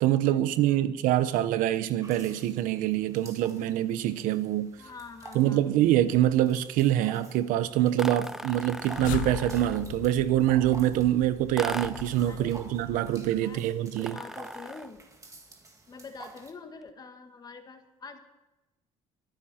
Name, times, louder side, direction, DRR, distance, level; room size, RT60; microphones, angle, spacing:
voice 1, 0.0-4.7 5.3-14.2, right 13 dB, 85° right, 0.8 m, -25 dB
sound 1, 2.0-16.5, right 2 dB, 25° right, 2.1 m, -51 dB
voice 2, 4.8-5.6 12.3-12.6 13.3-13.7 14.0-15.0 15.9-18.2, left 4 dB, 30° left, 1.8 m, -45 dB
sound 2, 8.0-10.0 11.6-12.2 14.0-15.0, right 1 dB, 5° right, 0.5 m, -38 dB
sound 3, 8.4-13.7, left 16 dB, 80° left, 0.5 m, -40 dB
23.0 x 10.0 x 4.4 m
cardioid pair, 115°, 13 cm